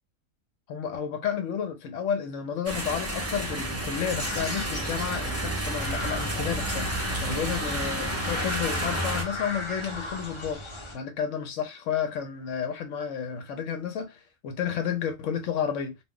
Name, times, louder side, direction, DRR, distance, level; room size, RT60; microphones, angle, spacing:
voice 1, 0.7-16.0, left 7 dB, 75° left, 0.9 m, -31 dB
sound 1, 2.7-9.2, right 1 dB, 20° right, 0.4 m, -31 dB
sound 2, 4.1-10.9, left 1 dB, 30° left, 0.7 m, -36 dB
2.3 x 2.2 x 3.6 m
omnidirectional pair, 1.4 m